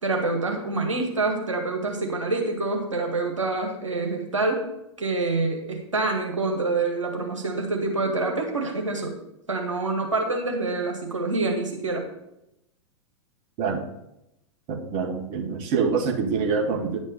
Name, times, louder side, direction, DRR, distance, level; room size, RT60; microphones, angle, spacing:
voice 1, 0.0-4.7 5.0-9.1 9.5-12.1, right 3 dB, 85° right, 2 dB, 2.1 m, -26 dB
voice 2, 14.7-17.0, right 5 dB, 50° right, 2 dB, 1.9 m, -25 dB
10.5 x 5.3 x 6.7 m, 0.82 s
figure-of-eight pair, 95°, 16 cm